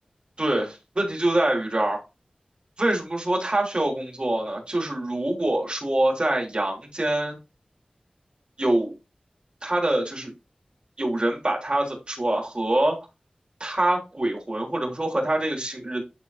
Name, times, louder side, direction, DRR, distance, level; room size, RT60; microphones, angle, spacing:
voice 1, 0.4-2.0 2.8-7.4 8.6-8.9 9.6-10.3 11.0-13.0 13.6-16.0, right 1 dB, 40° right, 3.2 m, -25 dB
11.0 x 4.2 x 2.6 m
wide cardioid pair, 55°, 3 cm